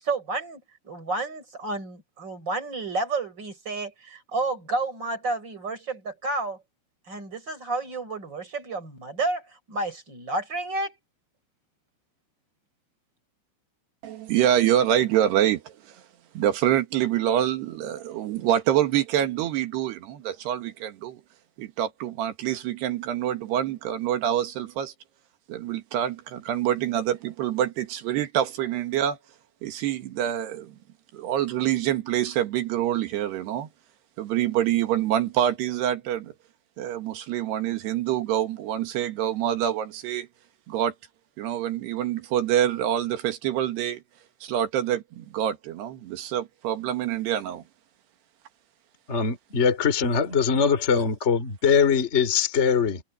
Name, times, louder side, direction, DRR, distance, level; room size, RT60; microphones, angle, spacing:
voice 1, 0.0-6.6 7.1-10.9, right 3 dB, 20° right, 7.0 m, -31 dB
voice 2, 14.0-16.0 16.3-21.2 21.6-24.9 25.5-29.2 29.6-30.7 31.1-33.7 34.2-36.3 36.8-40.3 40.7-40.9 41.4-44.0 44.4-47.6, right 11 dB, 65° right, 3.4 m, -26 dB
voice 3, 49.1-53.0, left 6 dB, 20° left, 2.0 m, -22 dB
omnidirectional pair, 5.7 m